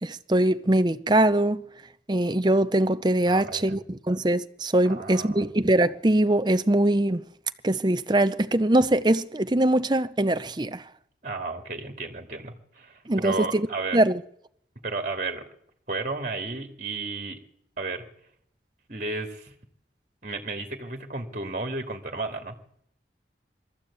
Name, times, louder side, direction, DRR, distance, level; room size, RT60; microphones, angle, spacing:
voice 1, 0.0-1.6 2.1-7.2 7.6-10.8 13.1-13.7 13.9-14.2, right 1 dB, 25° right, 0.7 m, -22 dB
voice 2, 3.3-3.7 4.8-5.5 11.2-14.0 14.8-15.4 15.9-17.4 17.8-18.0 18.9-19.5 20.2-22.6, right 3 dB, 45° right, 2.2 m, -33 dB
22.5 x 14.0 x 8.5 m
head